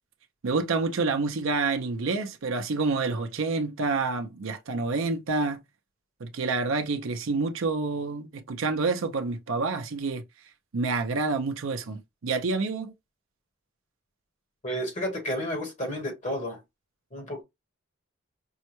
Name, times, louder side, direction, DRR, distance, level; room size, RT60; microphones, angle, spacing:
voice 1, 0.4-5.6 6.2-10.2 10.7-12.9, right 3 dB, 70° right, 0.5 m, -28 dB
voice 2, 14.6-16.6 17.1-17.4, equal, 35° left, 1.1 m, -31 dB
5.4 x 2.1 x 2.9 m
head